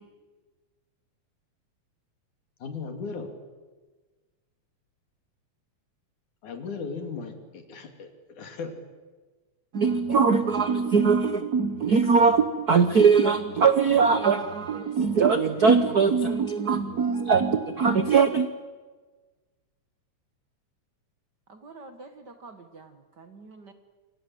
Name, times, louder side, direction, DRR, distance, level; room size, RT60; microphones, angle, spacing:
voice 1, 2.6-3.3 6.4-8.7, left 4 dB, 85° left, 4.4 m, -37 dB
voice 2, 9.7-18.5, right 5 dB, 70° right, 0.9 m, -21 dB
voice 3, 21.5-23.7, right 3 dB, 45° right, 1.8 m, -47 dB
28.5 x 26.0 x 7.9 m
omnidirectional pair, 3.4 m